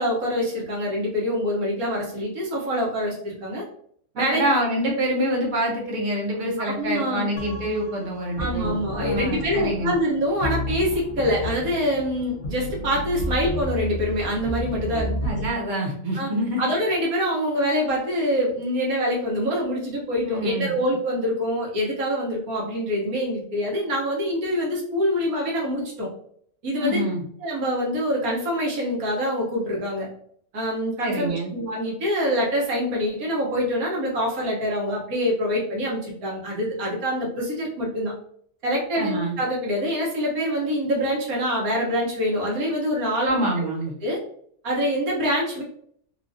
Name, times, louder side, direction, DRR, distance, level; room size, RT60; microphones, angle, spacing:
voice 1, 0.0-3.6 4.1-4.4 6.6-7.3 8.4-15.1 16.2-16.3 16.6-26.1 26.6-27.0 27.4-30.1 30.5-38.1 38.6-43.4 44.0-44.2 44.6-45.6, equal, 80° right, -3 dB, 1.4 m, -25 dB
voice 2, 4.3-9.9 15.2-16.7 20.2-20.7 26.8-27.2 31.0-31.5 39.0-39.4 43.2-43.9, right 1 dB, 40° right, -1 dB, 0.8 m, -26 dB
sound 1, 7.4-15.5, left 1 dB, 55° left, 0.7 m, -32 dB
3.2 x 2.4 x 2.6 m, 0.64 s
omnidirectional pair, 1.5 m